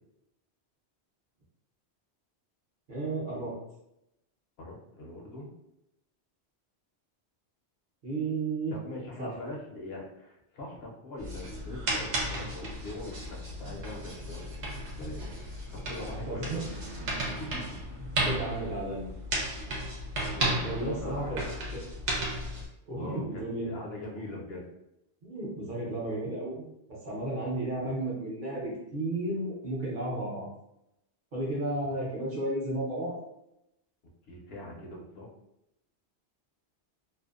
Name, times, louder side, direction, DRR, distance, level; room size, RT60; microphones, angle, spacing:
voice 1, 2.9-3.5 8.0-8.8 9.2-9.3 16.1-16.6 18.0-19.1 20.6-21.4 21.7-21.8 22.9-23.7 25.2-26.7 27.0-30.5 31.3-33.1, right 2 dB, 50° right, -5 dB, 0.8 m, -33 dB
voice 2, 4.6-5.5 8.7-16.5 17.4-18.1 20.3-21.5 22.9-24.6 34.2-35.3, left 1 dB, 70° left, -2 dB, 0.8 m, -42 dB
sound 1, 11.2-22.7, right 1 dB, 90° right, 1.0 m, -34 dB
2.6 x 2.0 x 2.3 m, 0.85 s
omnidirectional pair, 1.1 m